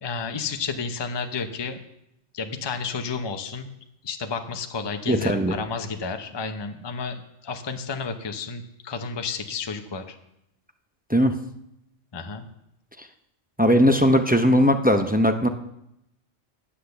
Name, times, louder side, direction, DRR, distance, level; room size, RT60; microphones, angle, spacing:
voice 1, 0.0-1.8 2.3-3.8 4.0-10.2 12.1-12.5, left 5 dB, 25° left, 6 dB, 0.7 m, -31 dB
voice 2, 5.1-5.6 11.1-11.3 13.6-15.5, equal, 10° right, 6 dB, 0.4 m, -19 dB
9.9 x 8.5 x 6.8 m, 0.81 s
omnidirectional pair, 1.3 m